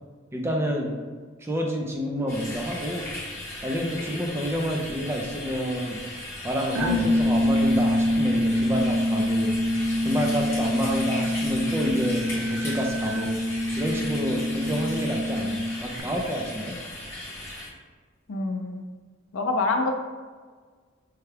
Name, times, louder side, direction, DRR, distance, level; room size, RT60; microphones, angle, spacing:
voice 1, 0.3-0.9 1.4-3.1 3.6-6.0 6.4-9.6 10.0-13.4 13.8-16.7, equal, 10° right, 0 dB, 0.5 m, -28 dB
sound 1, 2.3-17.7, left 1 dB, 15° left, 0.9 m, -37 dB
sound 2, 6.8-16.0, left 1 dB, 85° right, 0.5 m, -25 dB
voice 2, 18.3-18.8 19.3-20.0, left 3 dB, 85° left, 3 dB, 0.6 m, -26 dB
5.5 x 2.3 x 3.3 m, 1.5 s
head